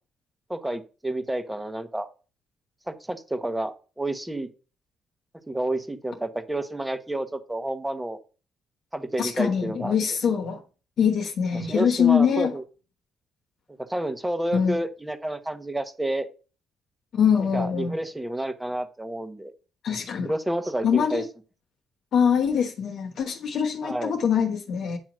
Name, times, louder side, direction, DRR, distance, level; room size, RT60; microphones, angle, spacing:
voice 1, 0.5-2.1 2.9-4.5 5.5-8.2 8.9-9.9 11.7-12.6 13.9-16.3 17.5-19.5 20.2-21.2 23.8-24.1, right 1 dB, 10° right, 1.1 m, -29 dB
voice 2, 9.2-10.6 11.0-12.6 14.5-14.8 17.1-17.9 19.8-20.3 20.8-21.3 22.1-25.0, left 7 dB, 65° left, 1.1 m, -23 dB
9.1 x 3.0 x 6.1 m
cardioid pair, 90°, 0 cm